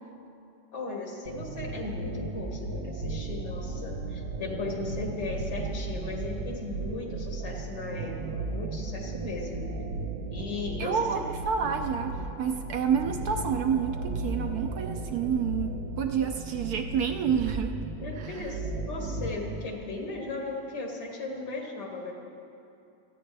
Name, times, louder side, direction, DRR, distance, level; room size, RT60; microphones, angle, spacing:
voice 1, 0.7-9.7 10.3-11.3 18.0-22.1, left 3 dB, 70° left, 0 dB, 2.4 m, -36 dB
sound 1, 1.3-19.7, right 3 dB, 85° right, 1.6 m, -35 dB
voice 2, 10.8-17.8 18.2-18.5, right 7 dB, 65° right, 5 dB, 1.1 m, -29 dB
27.5 x 9.4 x 3.4 m, 2.7 s
omnidirectional pair, 1.9 m